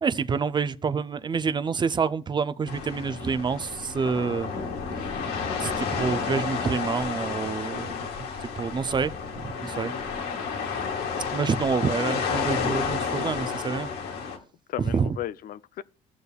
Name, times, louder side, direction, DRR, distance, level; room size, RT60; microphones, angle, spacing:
voice 1, 0.0-4.5 5.6-7.9 8.6-9.9 11.3-13.9 14.8-15.2, right 5 dB, 25° right, 0.4 m, -27 dB
sound 1, 2.7-14.4, left 5 dB, 80° left, 1.9 m, -31 dB
voice 2, 7.7-8.0 9.7-10.0 14.7-15.8, left 12 dB, 60° left, 0.4 m, -36 dB
17.0 x 6.7 x 2.3 m
cardioid pair, 110°, 17 cm